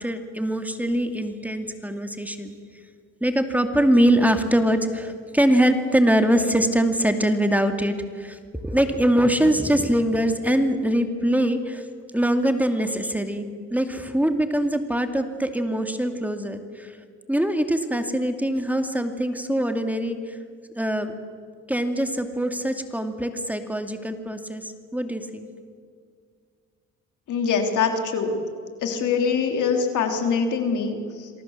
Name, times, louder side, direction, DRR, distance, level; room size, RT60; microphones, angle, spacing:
voice 1, 0.0-2.6 3.2-11.9 12.1-17.0 17.3-20.4 20.8-21.1 21.7-25.5, right 1 dB, 5° right, 6 dB, 2.4 m, -23 dB
voice 2, 27.3-28.4 28.8-31.3, left 5 dB, 75° left, 4 dB, 3.6 m, -24 dB
28.0 x 22.5 x 7.5 m, 2.1 s
cardioid pair, 90°, 30 cm